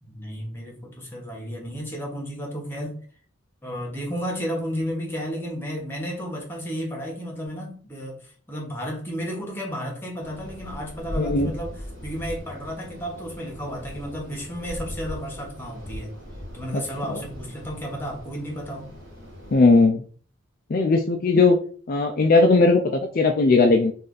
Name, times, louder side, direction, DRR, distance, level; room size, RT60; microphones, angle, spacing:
voice 1, 0.0-3.0 3.6-16.1 16.5-18.9, equal, 10° left, 1.0 m, -33 dB
sound 1, 10.2-19.9, equal, 55° right, 1.8 m, -39 dB
voice 2, 11.2-11.5 16.7-16.8 17.1-17.2 19.5-20.0 20.7-21.6 21.9-23.9, left 3 dB, 45° left, 0.4 m, -18 dB
3.2 x 2.6 x 3.8 m
head